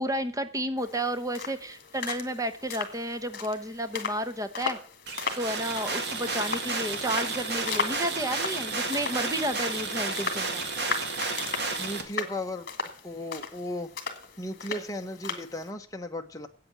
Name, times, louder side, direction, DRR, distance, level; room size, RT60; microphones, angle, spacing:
voice 1, 0.0-4.8 5.3-10.6, right 1 dB, 15° right, 10 dB, 0.9 m, -31 dB
sound 1, 0.8-15.7, left 5 dB, 50° left, 1.9 m, -37 dB
sound 2, 5.1-12.0, right 3 dB, 55° right, 2.0 m, -32 dB
voice 2, 11.8-12.7 13.0-13.9 14.4-16.5, left 1 dB, 15° left, 4 dB, 0.9 m, -35 dB
8.6 x 8.5 x 8.7 m, 0.43 s
head